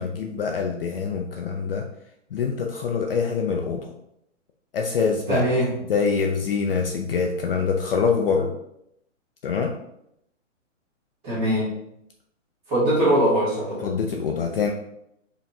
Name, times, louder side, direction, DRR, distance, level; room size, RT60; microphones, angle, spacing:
voice 1, 0.0-1.9 2.3-3.9 4.7-5.4 5.9-8.5 9.4-9.7 13.8-14.7, left 5 dB, 50° left, 2 dB, 0.4 m, -25 dB
voice 2, 5.3-5.7 11.2-11.7 12.7-13.8, right 1 dB, 15° right, -7 dB, 1.3 m, -21 dB
4.1 x 3.0 x 2.6 m, 0.78 s
hypercardioid pair, 155°, 38 cm